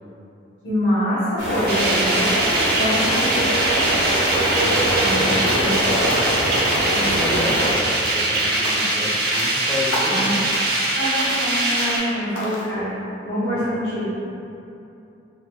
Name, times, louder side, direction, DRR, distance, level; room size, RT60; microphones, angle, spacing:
voice 1, 0.6-3.9 5.0-5.7 6.8-7.0 10.0-10.3 10.9-12.9 13.2-14.1, equal, 70° left, -13 dB, 1.1 m, -25 dB
sound 1, 1.4-7.7, right 1 dB, 85° right, 0.9 m, -23 dB
sound 2, 1.7-12.0, right 2 dB, 55° right, 0.5 m, -22 dB
sound 3, 4.3-4.6 4.9-5.8 6.1-6.5 6.7-7.1 7.4-7.7 8.0-8.3 8.6-9.0 9.3-9.6 9.9-10.3 10.5-10.9 11.2-11.5 11.8-12.1 12.3-12.7, left 1 dB, 85° left, 0.5 m, -32 dB
voice 2, 4.5-6.2 6.7-10.4 13.5-13.8, left 1 dB, 20° left, -3 dB, 0.3 m, -30 dB
3.3 x 2.1 x 2.9 m, 2.8 s
head